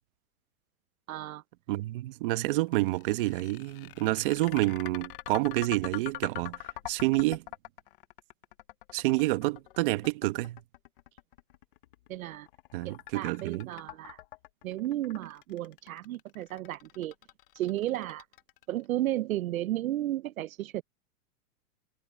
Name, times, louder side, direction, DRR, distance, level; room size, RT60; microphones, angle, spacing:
voice 1, 1.1-1.4 12.1-12.5 12.8-14.2 14.6-17.1 17.6-18.2 18.7-20.8, right 14 dB, 70° right, 0.8 m, -33 dB
voice 2, 1.7-6.6 6.9-7.4 8.9-10.6 12.7-13.7, right 20 dB, 35° right, 1.2 m, -28 dB
sound 1, 2.7-18.8, left 16 dB, 40° left, 0.7 m, -44 dB
supercardioid pair, 160°, 43 cm